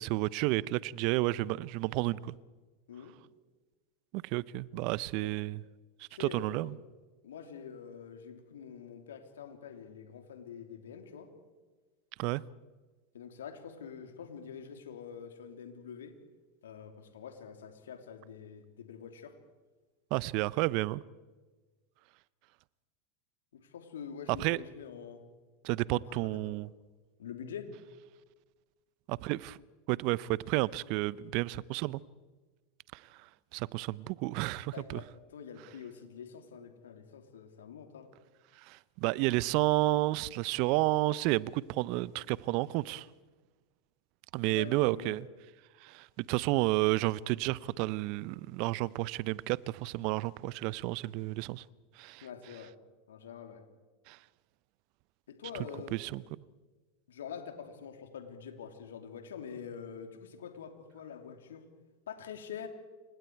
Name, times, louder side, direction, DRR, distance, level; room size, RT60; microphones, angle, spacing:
voice 1, 0.0-2.3 4.1-5.6 6.2-6.7 12.2-12.4 20.1-21.0 24.4-24.6 25.6-26.7 29.1-29.6 29.9-32.0 32.9-33.0 33.5-35.0 38.6-43.1 44.3-45.2 45.8-51.6 52.0-52.3 54.1-54.2 55.9-56.2, right 19 dB, 55° right, 0.7 m, -31 dB
voice 2, 6.1-6.8 7.2-11.3 13.1-16.2 16.6-19.3 23.5-25.2 25.9-26.5 27.2-27.7 34.7-38.1 44.5-45.2 52.2-52.7 53.1-53.6 55.3-56.0 57.1-61.7 62.1-62.7, left 7 dB, 75° left, 3.0 m, -46 dB
29.0 x 25.5 x 4.7 m
hypercardioid pair, 90°, 0 cm